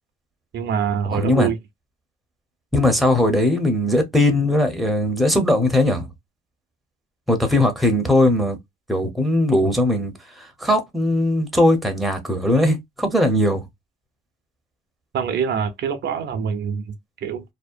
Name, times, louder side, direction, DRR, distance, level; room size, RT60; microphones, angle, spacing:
voice 1, 0.5-1.6 15.1-17.4, right 7 dB, 60° right, 0.6 m, -25 dB
voice 2, 1.1-1.5 2.7-6.1 7.3-8.6 8.9-13.6, left 1 dB, ahead, 0.7 m, -19 dB
2.7 x 2.0 x 2.4 m
cardioid pair, 90°, 20 cm